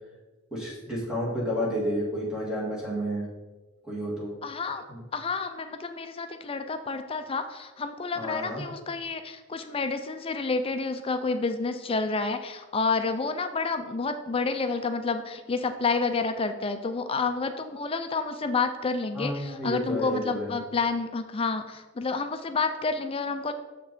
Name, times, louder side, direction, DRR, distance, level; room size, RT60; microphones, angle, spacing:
voice 1, 0.5-3.3 3.8-4.3 4.9-5.0 8.2-8.6 19.1-20.5, equal, 5° right, -7 dB, 2.1 m, -31 dB
voice 2, 4.4-4.8 5.1-23.5, left 4 dB, 25° left, 8 dB, 0.4 m, -29 dB
6.9 x 6.3 x 4.2 m, 1.2 s
head